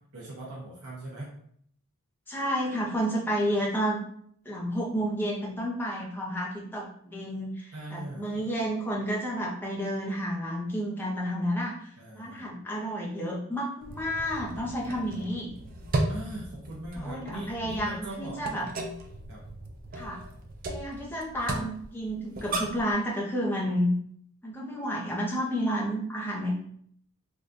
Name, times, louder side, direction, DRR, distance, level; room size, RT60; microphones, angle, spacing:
voice 1, 0.1-1.3 7.7-8.5 12.0-12.5 16.1-18.7 19.3-19.4 19.9-20.1, right 1 dB, 80° right, -4 dB, 0.7 m, -40 dB
voice 2, 2.3-4.0 4.4-15.5 17.0-18.7 19.9-20.2 20.7-23.9 24.4-26.5, equal, 10° left, -3 dB, 0.6 m, -31 dB
sound 1, 13.8-22.9, right 2 dB, 40° right, 0.3 m, -36 dB
3.6 x 2.3 x 2.6 m, 0.64 s
head